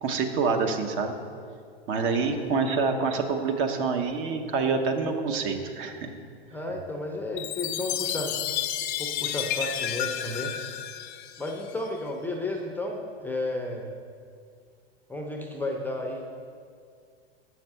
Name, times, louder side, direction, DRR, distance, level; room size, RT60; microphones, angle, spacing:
voice 1, 0.0-1.2 1.9-6.1, right 4 dB, 40° right, 5 dB, 0.8 m, -26 dB
voice 2, 1.9-2.6 6.5-8.4 9.0-10.5 11.4-13.9 15.1-16.2, left 2 dB, 5° left, 1 dB, 0.6 m, -33 dB
Chime, 7.4-11.9, left 11 dB, 50° left, 0.5 m, -31 dB
6.9 x 5.8 x 5.4 m, 2.2 s
hypercardioid pair, 110°, 32 cm